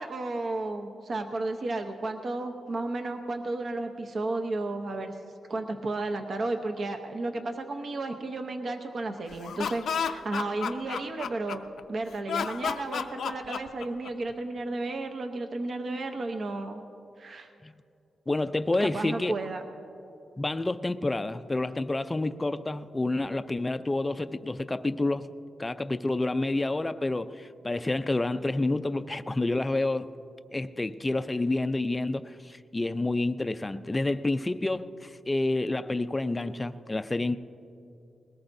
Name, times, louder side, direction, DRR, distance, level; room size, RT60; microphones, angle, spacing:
voice 1, 0.0-5.2 5.5-16.8 17.2-17.5 18.8-19.6, right 2 dB, 50° right, 0.8 m, -33 dB
Laughter, 9.3-11.8 12.3-14.3, left 7 dB, 80° left, 0.5 m, -32 dB
voice 2, 18.3-19.4 20.4-25.3 25.6-30.1 30.5-37.4, left 2 dB, 20° left, 0.4 m, -29 dB
21.0 x 18.5 x 2.7 m
cardioid pair, 110°, 0 cm